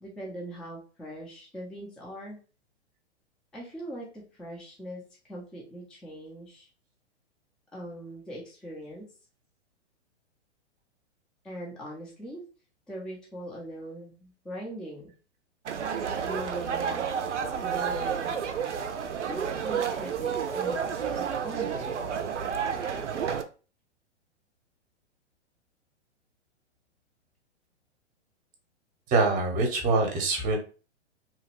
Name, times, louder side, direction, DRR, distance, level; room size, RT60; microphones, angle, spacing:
voice 1, 0.0-2.4 3.5-5.0 5.3-6.7 7.7-9.1 11.4-12.4 12.9-15.1 16.1-17.1 17.4-18.4 19.2-22.0, equal, ahead, -4 dB, 0.4 m, -41 dB
sound 1, 15.7-23.4, right 7 dB, 80° right, 0.5 m, -30 dB
voice 2, 29.1-30.6, right 3 dB, 25° right, 3 dB, 0.8 m, -24 dB
3.0 x 2.2 x 2.9 m, 0.35 s
figure-of-eight pair, 110°, 35 cm